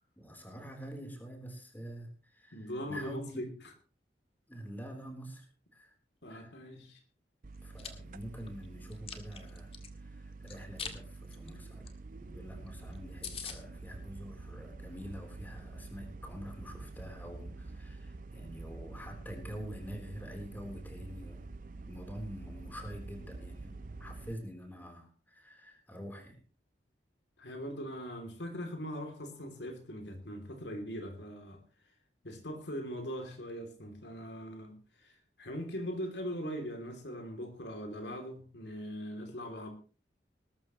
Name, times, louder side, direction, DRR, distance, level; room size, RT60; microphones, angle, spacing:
voice 1, 0.2-3.5 4.5-5.5 5.7-5.9 6.3-6.5 7.6-11.9 12.2-21.5 21.9-26.4, equal, 10° left, 3.7 m, -46 dB
voice 2, 2.5-3.5 6.2-7.0 27.4-31.6 32.2-39.7, equal, 80° left, 3.0 m, -41 dB
sound 1, 7.4-24.3, right 3 dB, 50° right, 0.6 m, -47 dB
Chewing mastication, 7.5-7.9 8.4-9.9 10.5-11.0 11.3-11.5 11.9-12.0 12.2-12.3 12.7-12.8 12.9-13.0 13.2-13.6, left 6 dB, 35° left, 1.9 m, -42 dB
19.5 x 13.0 x 3.1 m
head